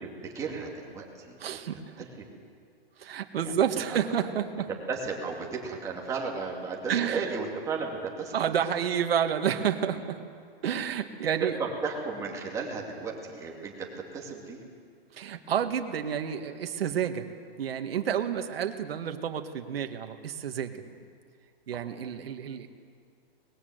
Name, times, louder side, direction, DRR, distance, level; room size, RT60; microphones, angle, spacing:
voice 1, 0.2-1.6 2.0-2.4 3.4-3.5 3.9-4.0 4.9-8.4 11.4-13.9 14.1-14.6 20.7-20.9 21.7-21.8, right 4 dB, 10° right, -1 dB, 2.5 m, -34 dB
voice 2, 1.4-2.1 3.0-4.7 6.9-7.4 8.3-10.2 10.6-11.5 15.1-17.3 17.6-20.8 21.7-22.7, right 8 dB, 70° right, 6 dB, 1.9 m, -30 dB
24.0 x 20.5 x 8.1 m, 2.2 s
hypercardioid pair, 170°, 31 cm